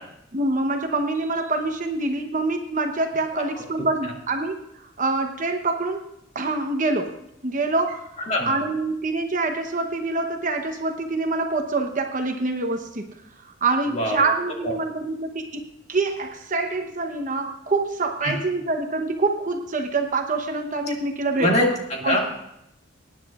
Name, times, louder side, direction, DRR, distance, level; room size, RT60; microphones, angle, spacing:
voice 1, 0.3-4.6 5.0-6.0 6.3-13.1 13.4-21.7 22.0-22.2, right 3 dB, 40° right, 4 dB, 0.9 m, -25 dB
voice 2, 21.4-22.3, left 1 dB, 30° left, -1 dB, 2.1 m, -23 dB
23.0 x 10.0 x 2.4 m, 0.80 s
head